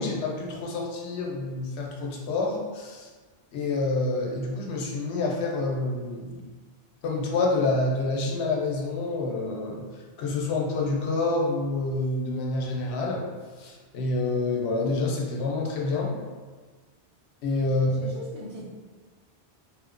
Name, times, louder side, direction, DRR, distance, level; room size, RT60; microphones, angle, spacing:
voice 1, 0.0-3.1 3.5-6.4 7.0-9.9 10.2-13.3 13.6-16.1 17.4-18.1, left 2 dB, 85° left, -1 dB, 0.8 m, -27 dB
voice 2, 17.7-18.7, equal, 75° right, -5 dB, 1.0 m, -41 dB
2.8 x 2.1 x 2.4 m, 1.4 s
omnidirectional pair, 1.1 m